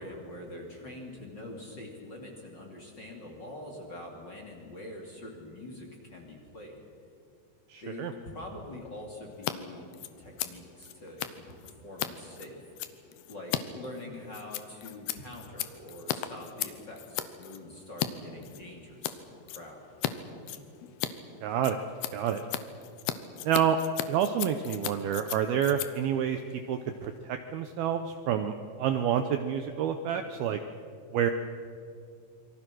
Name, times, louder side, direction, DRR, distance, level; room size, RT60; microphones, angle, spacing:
voice 1, 0.0-6.8 7.8-9.9 10.2-12.6 13.3-19.8, left 1 dB, 30° left, 0 dB, 2.7 m, -44 dB
voice 2, 7.7-8.1 21.4-21.8 22.1-22.4 23.5-23.8 24.1-26.4 26.7-30.6 31.1-31.3, right 9 dB, 75° right, 7 dB, 2.3 m, -28 dB
Scissors, 9.3-9.5 9.8-18.1 18.4-19.2 19.5-20.1 20.4-27.2, left 12 dB, 75° left, 2.7 m, -36 dB
27.5 x 23.5 x 6.3 m, 2.4 s
omnidirectional pair, 5.2 m